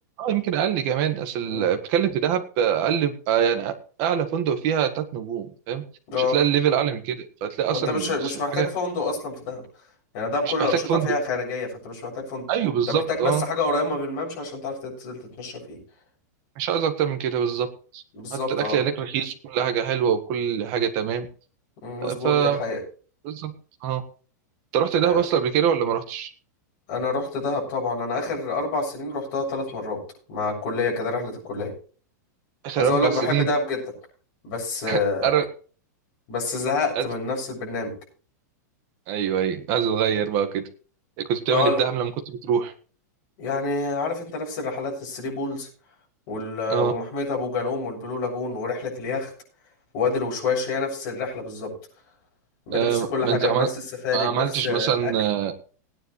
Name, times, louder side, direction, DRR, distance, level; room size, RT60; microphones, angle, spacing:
voice 1, 0.2-3.7 4.0-5.8 6.2-8.7 10.4-11.1 12.5-13.5 16.6-17.7 17.9-18.0 18.3-21.3 22.0-22.6 23.2-23.5 23.8-24.0 24.7-26.3 32.6-33.5 34.9-35.4 36.9-37.0 39.1-40.6 41.2-42.7 46.7-46.9 52.7-53.7 54.1-55.5, right 8 dB, 35° right, 7 dB, 1.5 m, -24 dB
voice 2, 7.7-9.6 10.1-12.5 12.9-15.8 18.1-18.8 21.8-22.8 25.0-25.2 26.9-30.0 30.3-31.7 32.8-33.8 34.4-35.3 36.3-37.9 41.5-41.8 43.4-45.7 46.3-49.3 49.9-51.7 52.7-53.7 54.0-55.1, left 3 dB, 35° left, -3 dB, 7.1 m, -27 dB
19.0 x 9.8 x 3.3 m, 0.39 s
supercardioid pair, 170°, 10 cm